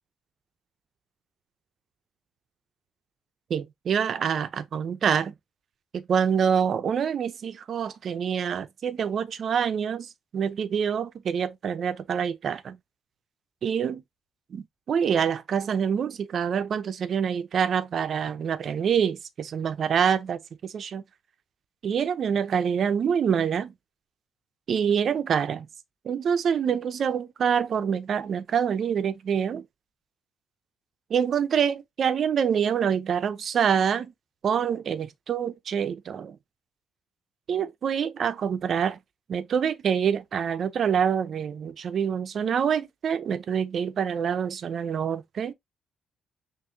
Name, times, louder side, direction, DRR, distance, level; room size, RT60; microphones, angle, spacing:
voice 1, 3.5-5.3 5.9-12.8 13.6-14.0 14.5-21.0 21.8-23.7 24.7-25.7 26.0-29.6 31.1-34.1 34.4-36.4 37.5-39.0 39.3-45.5, right 7 dB, 50° right, 0.6 m, -26 dB
6.2 x 2.6 x 2.7 m
cardioid pair, 120°, 0 cm